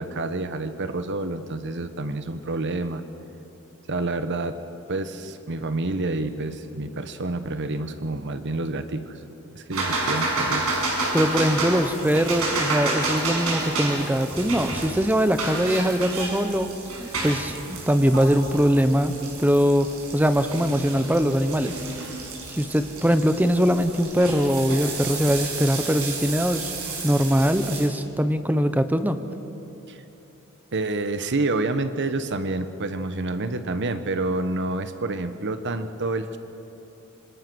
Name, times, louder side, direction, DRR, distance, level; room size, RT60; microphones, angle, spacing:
voice 1, 0.0-3.0 3.9-4.6 4.9-9.2 9.5-10.7 29.9-30.0 30.7-36.4, right 2 dB, 55° right, 10 dB, 1.1 m, -28 dB
sound 1, 9.7-27.9, right 2 dB, 85° right, 6.3 m, -30 dB
voice 2, 11.1-16.7 17.0-19.1 19.4-21.8 22.5-26.7 27.0-29.2, equal, 10° right, 9 dB, 1.0 m, -22 dB
26.0 x 25.5 x 6.2 m, 2.9 s
head